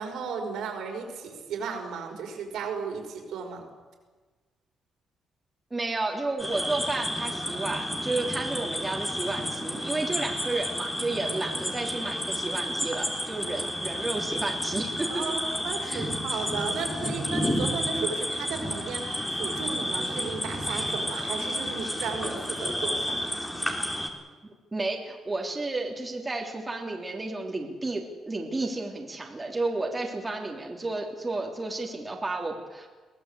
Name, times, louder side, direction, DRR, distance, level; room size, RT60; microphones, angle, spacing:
voice 1, 0.0-3.6 15.1-23.2, right 5 dB, 80° right, 3 dB, 5.3 m, -34 dB
voice 2, 5.7-15.2 15.8-16.1 24.7-32.9, right 2 dB, 20° right, 0 dB, 3.4 m, -32 dB
sound 1, 6.4-24.1, equal, 10° left, 3.4 m, -31 dB
23.0 x 17.0 x 8.4 m, 1.3 s
cardioid pair, 105°, 0 cm